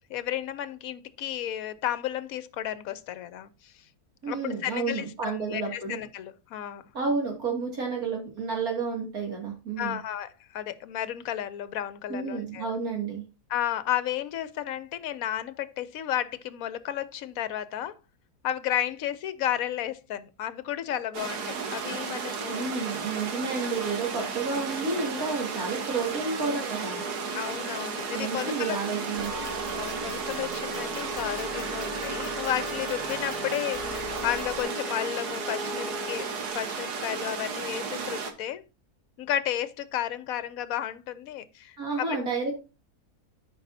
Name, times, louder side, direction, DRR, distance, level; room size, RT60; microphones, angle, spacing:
voice 1, 0.1-3.8 4.3-6.8 9.8-12.7 13.5-17.9 18.4-22.7 27.3-29.2 29.7-38.6 39.2-42.1, left 11 dB, 70° left, 1.1 m, -33 dB
voice 2, 4.2-6.0 6.9-10.0 12.1-13.2 22.5-27.0 28.1-29.3 41.8-42.6, right 4 dB, 65° right, 2.9 m, -31 dB
sound 1, 21.1-38.3, right 5 dB, 85° right, 1.7 m, -34 dB
Wind instrument woodwind instrument, 26.7-36.5, left 6 dB, 35° left, 1.9 m, -41 dB
sound 2, 29.2-34.6, right 2 dB, 25° right, 1.7 m, -41 dB
13.0 x 5.3 x 2.7 m
omnidirectional pair, 1.6 m